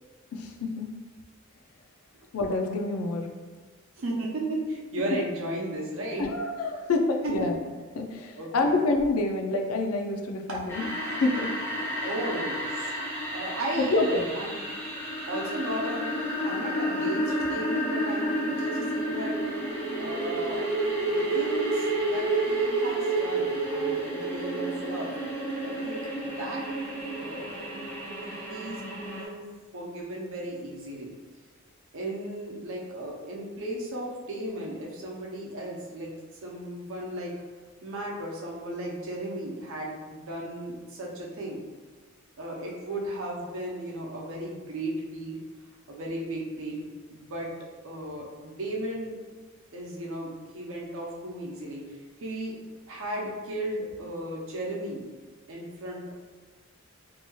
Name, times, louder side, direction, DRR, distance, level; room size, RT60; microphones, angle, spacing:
voice 1, 0.3-0.9 2.3-3.3 6.2-7.5 8.0-11.5 11.9-12.1 13.8-14.3, left 2 dB, 90° left, 3 dB, 0.4 m, -27 dB
voice 2, 4.0-6.3 7.2-7.5 8.3-8.8 10.5-10.6 12.0-12.9 13.3-14.6 15.3-19.4 19.9-20.7 21.0-25.1 25.6-26.0 26.2-26.6 27.2-27.7 28.2-29.5 29.7-31.1 31.9-36.1 36.4-37.3 37.8-41.6 42.4-45.4 45.9-47.5 47.8-49.2 49.7-52.6 52.9-55.0 55.5-56.1, right 1 dB, 70° right, -3 dB, 0.6 m, -35 dB
sound 1, 10.7-29.2, right 1 dB, 10° left, 0.6 m, -30 dB
2.7 x 2.2 x 2.9 m, 1.4 s
head